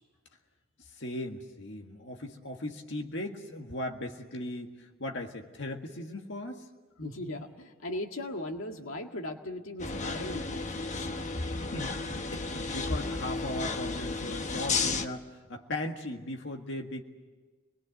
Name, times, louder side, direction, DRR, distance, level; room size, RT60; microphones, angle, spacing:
voice 1, 1.0-6.7 11.6-17.0, left 1 dB, 60° left, 3 dB, 1.8 m, -38 dB
voice 2, 7.0-11.1, left 1 dB, 80° left, 3 dB, 1.9 m, -38 dB
sound 1, 9.8-15.1, left 4 dB, 35° left, 1.1 m, -33 dB
27.0 x 21.0 x 7.9 m, 1.3 s
head